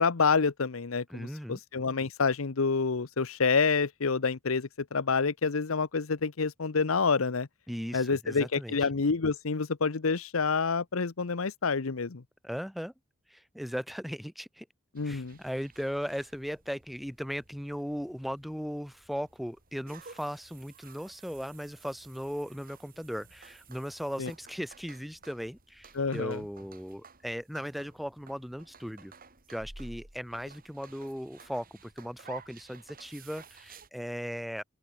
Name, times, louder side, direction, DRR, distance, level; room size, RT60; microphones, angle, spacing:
voice 1, 0.0-7.5 7.9-12.2 14.9-15.4 24.2-24.3 25.9-26.4, left 4 dB, 80° left, 0.8 m, -28 dB
voice 2, 1.1-1.6 7.7-8.7 12.4-12.9 13.3-14.7 15.0-29.1 29.5-34.6, equal, ahead, 3.8 m, -37 dB
sound 1, 15.0-33.9, right 4 dB, 45° right, 5.8 m, -54 dB
open air
head